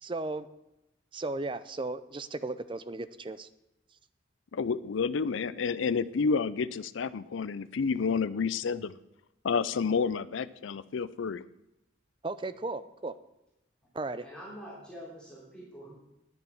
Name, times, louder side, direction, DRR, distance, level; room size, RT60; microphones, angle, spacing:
voice 1, 0.0-0.5 1.1-3.5 12.2-13.1 13.9-14.2, right 2 dB, 25° right, 14 dB, 0.5 m, -35 dB
voice 2, 4.5-8.9 9.4-11.4, left 5 dB, 85° left, 16 dB, 0.5 m, -30 dB
voice 3, 14.2-15.9, equal, 5° left, -7 dB, 3.4 m, -45 dB
9.7 x 7.7 x 7.0 m, 0.91 s
head